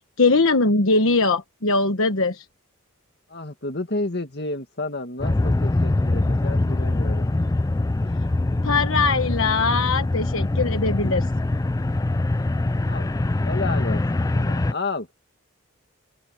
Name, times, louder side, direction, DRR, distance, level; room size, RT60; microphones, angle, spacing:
voice 1, 0.2-2.4 8.6-11.2, left 3 dB, 70° left, 1.2 m, -21 dB
voice 2, 3.3-7.3 12.8-13.1 13.4-15.1, left 2 dB, 50° left, 2.3 m, -31 dB
sound 1, 5.2-14.7, left 2 dB, 15° left, 0.3 m, -23 dB
open air
head